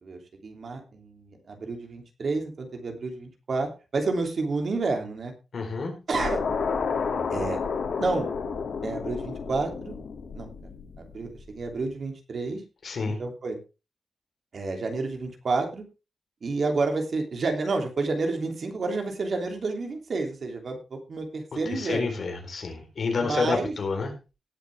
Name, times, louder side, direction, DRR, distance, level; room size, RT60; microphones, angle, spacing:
voice 1, 0.0-5.3 6.1-6.4 7.3-7.6 8.0-8.3 8.8-9.9 10.3-10.5 11.0-12.6 13.1-13.6 14.5-15.8 16.4-22.1 23.2-23.7, right 3 dB, 55° right, 4 dB, 3.0 m, -30 dB
voice 2, 5.5-6.0 12.8-13.2 21.7-24.1, left 4 dB, 60° left, 3 dB, 4.1 m, -29 dB
sound 1, 6.1-11.4, left 5 dB, 80° left, 2.7 m, -31 dB
18.5 x 7.5 x 3.5 m, 0.29 s
wide cardioid pair, 135°, 0 cm